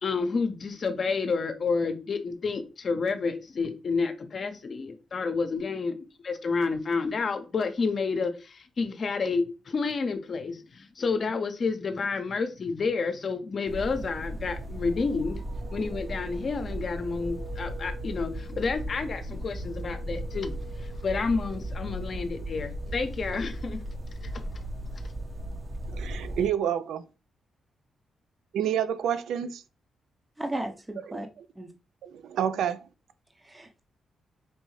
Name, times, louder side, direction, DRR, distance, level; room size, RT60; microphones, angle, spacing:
voice 1, 0.0-6.0 6.2-15.4 15.7-23.8 24.2-24.6, left 4 dB, 55° left, 0.7 m, -30 dB
sound 1, 13.7-26.5, right 1 dB, 40° right, 0.9 m, -36 dB
voice 2, 25.9-27.0 28.5-29.6 31.1-31.2 32.0-32.8, right 9 dB, 85° right, 0.3 m, -28 dB
voice 3, 30.4-31.3 31.6-31.7 33.4-33.8, right 1 dB, 20° right, 0.7 m, -35 dB
4.4 x 2.7 x 3.1 m
cardioid pair, 65°, 0 cm